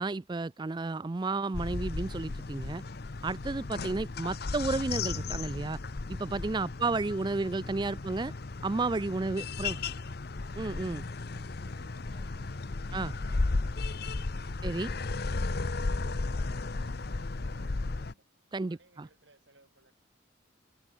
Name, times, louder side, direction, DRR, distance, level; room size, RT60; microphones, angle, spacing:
voice 1, 0.0-2.8 3.2-5.8 6.1-8.3 8.6-9.8 10.6-11.0 12.9-13.1 14.6-14.9 18.5-19.1, right 3 dB, 20° right, 0.4 m, -32 dB
sound 1, 1.5-18.1, left 3 dB, 50° left, 0.7 m, -35 dB
voice 2, 6.7-8.1 9.2-10.0 10.7-14.1 14.3-15.7 16.1-19.9, right 2 dB, 65° right, 6.3 m, -63 dB
head